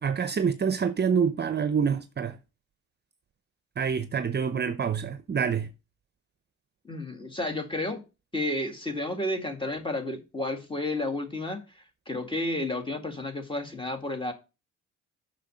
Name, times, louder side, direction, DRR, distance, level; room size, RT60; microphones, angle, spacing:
voice 1, 0.0-2.4 3.8-5.7, right 6 dB, 35° right, 0.7 m, -26 dB
voice 2, 6.8-8.0 8.3-14.3, left 1 dB, 15° left, 2.1 m, -31 dB
6.6 x 6.2 x 6.3 m
cardioid pair, 90°, 30 cm